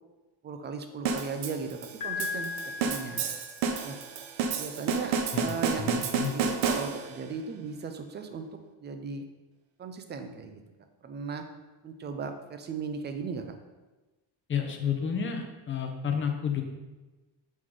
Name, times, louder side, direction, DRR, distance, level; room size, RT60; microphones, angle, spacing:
voice 1, 0.4-2.5 2.8-3.2 3.8-4.0 4.6-9.2 9.8-10.6 11.0-11.4 11.8-13.6, right 5 dB, 25° right, 7 dB, 0.3 m, -37 dB
sound 1, 1.0-7.3, right 5 dB, 80° right, 0.8 m, -30 dB
Piano, 2.0-3.9, left 5 dB, 40° left, 1.0 m, -37 dB
voice 2, 5.9-6.3 14.5-16.6, left 7 dB, 25° left, 3 dB, 0.6 m, -30 dB
6.2 x 3.7 x 4.8 m, 1.1 s
cardioid pair, 170°, 48 cm